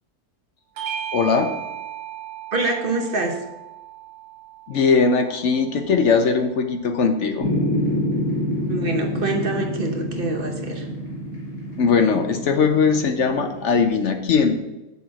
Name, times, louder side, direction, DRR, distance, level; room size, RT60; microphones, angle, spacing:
Bell / Doorbell, 0.8-5.6, right 10 dB, 70° right, 1.1 m, -35 dB
voice 1, 1.1-1.5 4.7-7.5 11.8-14.6, left 5 dB, 65° left, 6 dB, 0.9 m, -20 dB
voice 2, 2.5-3.3 8.7-10.8, right 3 dB, 45° right, 2 dB, 1.1 m, -25 dB
sound 1, 7.4-13.9, left 1 dB, 80° left, 2.3 m, -27 dB
6.9 x 4.4 x 6.3 m, 1.0 s
omnidirectional pair, 1.5 m